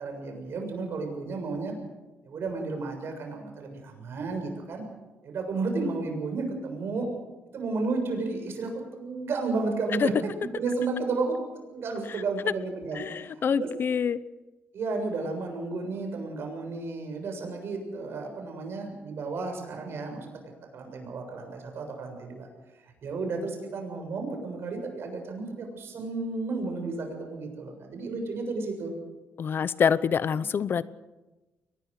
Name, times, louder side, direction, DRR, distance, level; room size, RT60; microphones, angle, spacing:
voice 1, 0.0-1.7 2.2-4.8 5.2-7.1 7.5-13.3 13.6-13.7 14.7-20.3 20.7-22.5 23.0-28.9, right 3 dB, 65° right, 4 dB, 6.9 m, -32 dB
voice 2, 12.9-14.2 29.4-30.9, left 7 dB, 55° left, 17 dB, 0.8 m, -26 dB
23.0 x 20.0 x 6.6 m, 1.1 s
cardioid pair, 90°, 4 cm